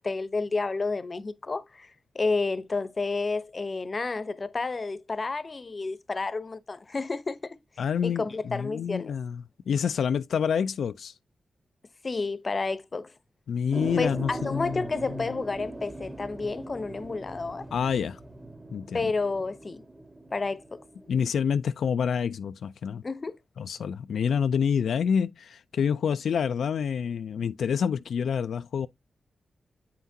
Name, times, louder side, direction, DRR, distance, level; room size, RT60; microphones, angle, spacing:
voice 1, 0.0-7.6 8.0-9.1 12.0-13.1 14.0-17.7 18.9-19.8 20.3-20.8 23.0-23.4, left 3 dB, 35° left, 0.7 m, -30 dB
voice 2, 7.8-11.2 13.5-15.2 17.7-18.2 18.7-19.1 21.1-23.0 23.6-28.9, left 7 dB, 80° left, 0.3 m, -28 dB
sound 1, 13.7-21.2, right 2 dB, 15° right, 1.0 m, -40 dB
8.2 x 5.8 x 2.7 m
cardioid pair, 80°, 0 cm